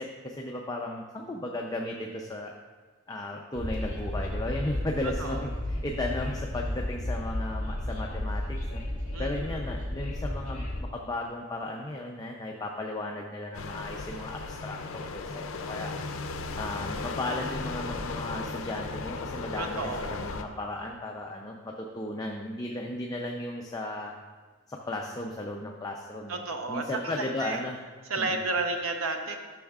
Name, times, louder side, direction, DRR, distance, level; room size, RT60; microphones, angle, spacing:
voice 1, 0.0-2.5 3.1-8.8 9.2-15.9 16.6-24.1 24.7-27.8 28.2-28.4, left 1 dB, 20° left, 0 dB, 0.5 m, -35 dB
Train, 3.6-10.8, left 1 dB, 40° left, 1.6 m, -33 dB
voice 2, 5.0-5.5 9.1-9.3 19.6-20.2 26.3-27.6 28.1-29.4, right 3 dB, 90° right, 5 dB, 0.8 m, -32 dB
sound 1, 13.5-20.4, left 3 dB, 70° left, 0.5 m, -36 dB
12.0 x 6.3 x 2.4 m, 1.4 s
head